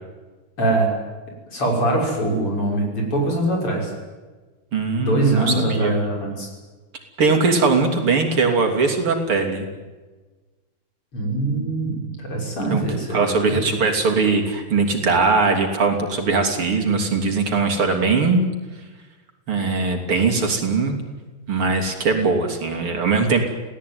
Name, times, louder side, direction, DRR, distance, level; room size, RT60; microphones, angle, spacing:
voice 1, 0.6-0.9 1.5-3.9 5.0-6.5 11.1-13.6, right 2 dB, 80° left, 0 dB, 7.4 m, -23 dB
voice 2, 4.7-5.9 7.2-9.6 12.7-12.8 13.1-18.5 19.5-21.0 21.5-23.5, right 4 dB, 75° right, 3 dB, 4.1 m, -20 dB
27.0 x 17.5 x 9.6 m, 1.3 s
omnidirectional pair, 2.4 m